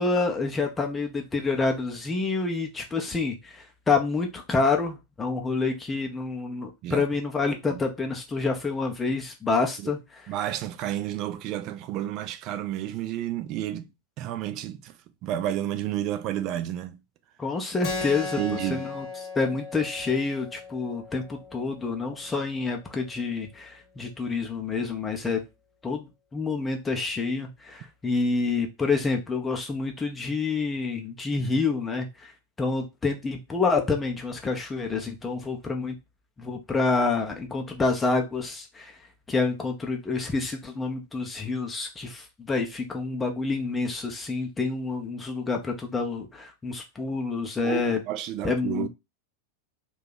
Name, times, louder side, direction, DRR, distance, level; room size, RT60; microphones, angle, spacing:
voice 1, 0.0-10.2 17.4-19.0 19.4-25.4 25.8-32.3 32.6-35.9 36.4-39.0 39.3-48.0 48.4-48.9, left 4 dB, 15° left, 0.5 m, -28 dB
voice 2, 10.3-13.9 14.2-17.0 18.4-18.9 47.6-48.9, right 12 dB, 40° right, 0.3 m, -31 dB
Keyboard (musical), 17.8-22.9, left 3 dB, 40° left, 0.9 m, -37 dB
2.7 x 2.3 x 3.8 m
figure-of-eight pair, 90°, 0 cm